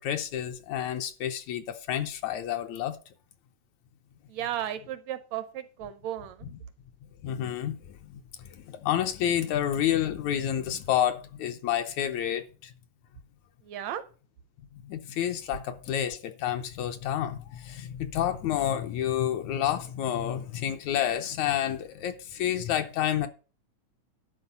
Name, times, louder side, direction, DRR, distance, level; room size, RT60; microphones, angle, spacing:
voice 1, 0.0-3.0 7.2-8.2 8.5-12.7 14.8-23.3, left 10 dB, 75° left, 1.9 m, -29 dB
voice 2, 4.3-6.5 13.6-14.0, right 11 dB, 75° right, 1.6 m, -34 dB
11.5 x 4.5 x 6.7 m
omnidirectional pair, 3.6 m